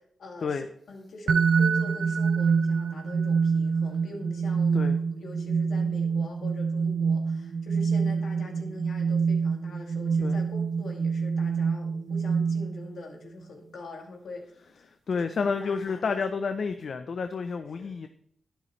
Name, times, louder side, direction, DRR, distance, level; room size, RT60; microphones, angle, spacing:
voice 1, 0.0-14.4 15.1-16.2 17.6-17.9, left 2 dB, 80° left, 2 dB, 2.3 m, -44 dB
sound 1, 1.3-13.0, right 5 dB, 70° right, 0.4 m, -26 dB
voice 2, 15.1-18.1, left 5 dB, 65° left, 8 dB, 0.6 m, -30 dB
11.0 x 10.0 x 3.2 m, 0.66 s
cardioid pair, 90°, 0 cm